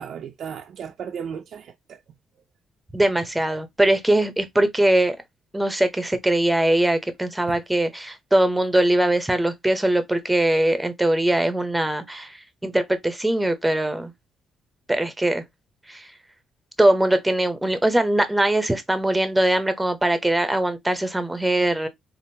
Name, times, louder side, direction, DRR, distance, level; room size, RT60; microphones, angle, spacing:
voice 1, 0.0-2.0 7.5-7.6, right 7 dB, 65° right, 0.4 m, -35 dB
voice 2, 2.9-5.2 5.5-12.3 12.6-14.1 14.9-15.4 15.9-16.1 16.8-21.9, right 1 dB, 10° right, 0.7 m, -21 dB
3.5 x 2.4 x 2.6 m
cardioid pair, 90°, 0 cm